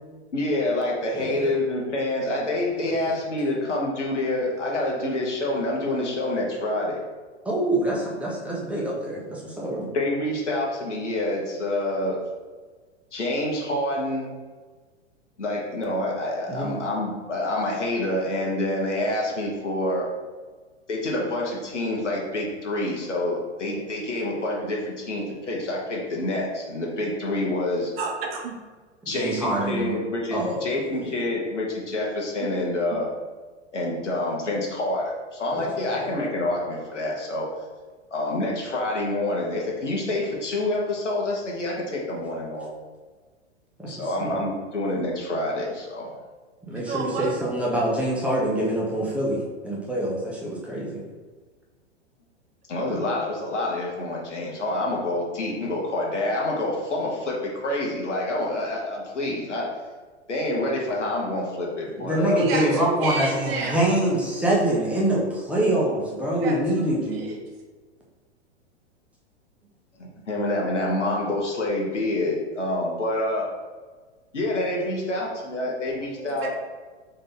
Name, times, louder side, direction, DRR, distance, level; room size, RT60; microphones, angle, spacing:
voice 1, 0.3-7.0 9.9-12.2 13.1-14.3 15.4-20.1 20.9-27.9 29.0-33.1 33.7-37.5 38.1-42.7 43.9-46.1 52.7-59.7 60.3-62.8 70.0-73.5 74.3-76.5, left 1 dB, 80° left, -2 dB, 1.2 m, -27 dB
voice 2, 1.1-1.5 2.8-3.1 7.4-9.9 16.5-16.7 29.0-30.0 30.3-31.1 35.5-35.7 36.0-36.1 43.8-44.4 46.7-51.0 61.9-67.3, right 1 dB, 5° right, -4 dB, 0.9 m, -25 dB
voice 3, 28.0-28.6 32.4-32.5 46.8-47.3 62.4-63.8 66.4-66.6 67.3-67.4 76.2-76.5, right 4 dB, 55° right, 2 dB, 1.0 m, -30 dB
3.8 x 3.3 x 3.8 m, 1.4 s
figure-of-eight pair, 100°, 35 cm